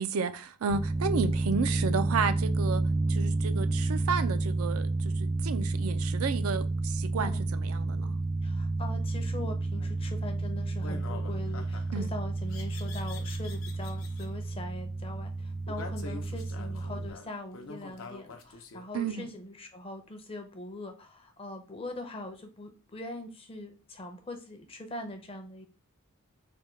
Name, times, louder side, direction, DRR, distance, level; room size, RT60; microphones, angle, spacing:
voice 1, 0.0-2.8 3.1-8.2 11.9-12.1 18.9-19.3, right 5 dB, 75° right, 0.4 m, -32 dB
sound 1, 0.7-17.1, right 2 dB, 20° right, 0.5 m, -30 dB
voice 2, 8.4-25.7, left 1 dB, 25° left, 0.6 m, -42 dB
sound 2, 9.8-10.0 10.8-12.0 12.5-14.3 15.7-19.1, left 4 dB, 65° left, 0.6 m, -45 dB
3.4 x 2.2 x 4.3 m
head